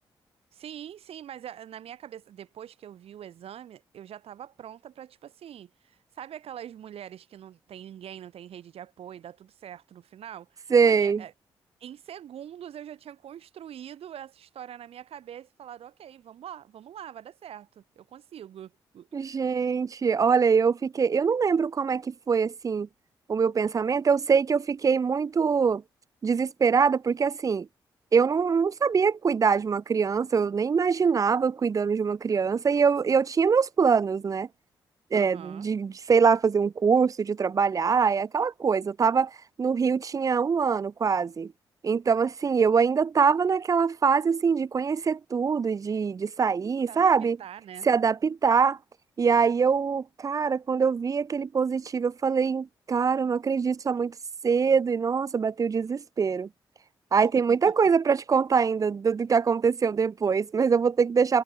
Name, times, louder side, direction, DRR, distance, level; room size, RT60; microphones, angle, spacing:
voice 1, 0.5-11.3 11.8-19.7 35.1-35.7 46.9-47.9, right 10 dB, 70° right, 1.5 m, -44 dB
voice 2, 10.7-11.2 19.1-22.9 23.3-25.8 26.2-27.7 28.1-34.5 35.1-41.5 41.8-47.4 47.8-48.8 49.2-54.1 54.4-56.5 57.1-61.4, right 6 dB, 35° right, 0.3 m, -24 dB
hypercardioid pair, 40°, 11 cm